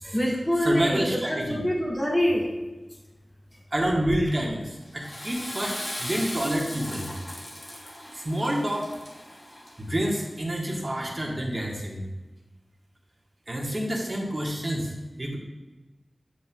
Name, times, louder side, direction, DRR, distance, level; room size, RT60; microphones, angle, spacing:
voice 1, 0.0-2.4, equal, 20° left, -2 dB, 1.4 m, -25 dB
voice 2, 0.6-1.6 3.7-7.1 8.1-8.9 9.8-12.0 13.5-14.9 15.2-15.4, right 1 dB, 40° right, -1 dB, 1.3 m, -28 dB
Water / Toilet flush, 4.8-10.0, left 1 dB, 50° left, 1.4 m, -38 dB
7.6 x 5.7 x 2.3 m, 1.1 s
wide cardioid pair, 50°, 0 cm